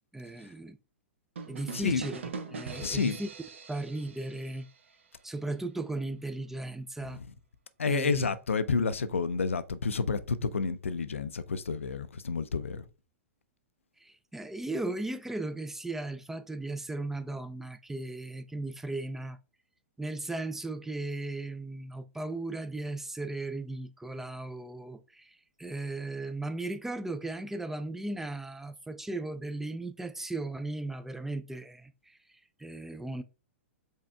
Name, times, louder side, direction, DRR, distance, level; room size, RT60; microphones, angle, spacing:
voice 1, 0.1-0.8 1.5-3.3 3.7-4.7 5.2-7.2 7.8-8.3 14.0-19.4 20.0-32.2 32.6-33.2, right 2 dB, 5° right, 0.3 m, -36 dB
sound 1, 1.4-5.1, right 4 dB, 70° right, 0.7 m, -42 dB
voice 2, 1.7-2.0 2.8-3.2 7.0-7.3 7.8-12.8, left 5 dB, 80° left, 0.4 m, -30 dB
5.4 x 4.2 x 2.2 m
figure-of-eight pair, 105°, 7 cm